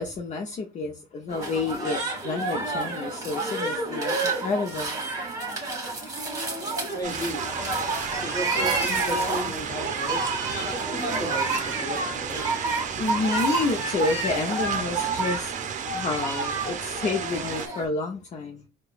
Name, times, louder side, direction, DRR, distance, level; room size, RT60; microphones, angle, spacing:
voice 1, 0.0-4.9 13.0-15.5 15.8-18.6, left 3 dB, 45° left, 0.7 m, -29 dB
sound 1, 1.3-17.9, right 3 dB, 20° right, 1.8 m, -30 dB
voice 2, 6.6-13.2, equal, 20° left, 1.2 m, -36 dB
sound 2, 7.0-17.7, right 7 dB, 45° right, 0.6 m, -33 dB
4.7 x 2.3 x 2.4 m
cardioid pair, 110°, 17 cm